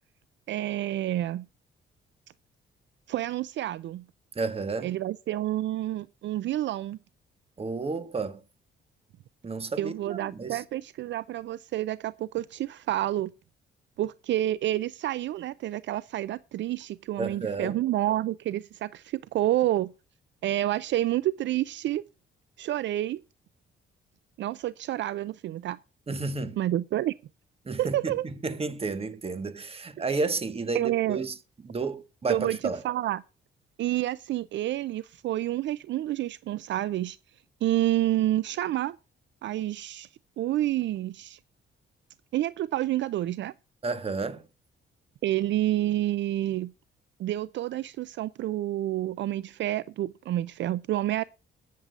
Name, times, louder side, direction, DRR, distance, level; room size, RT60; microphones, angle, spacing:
voice 1, 0.5-1.5 3.1-4.0 4.8-7.0 9.8-13.3 14.0-19.9 20.4-22.0 22.6-23.2 24.4-25.8 26.6-27.1 27.8-28.2 30.7-31.2 32.3-33.2 33.8-37.2 37.6-39.0 39.4-40.1 40.4-41.4 42.3-43.5 45.2-46.7 47.2-51.2, right 14 dB, 65° right, 0.5 m, -29 dB
voice 2, 4.3-4.9 7.6-8.4 9.4-10.6 17.2-17.8 26.1-26.6 27.7-31.3 31.6-32.8 43.8-44.4, right 3 dB, 30° right, 1.5 m, -31 dB
21.0 x 7.5 x 2.5 m
cardioid pair, 90°, 20 cm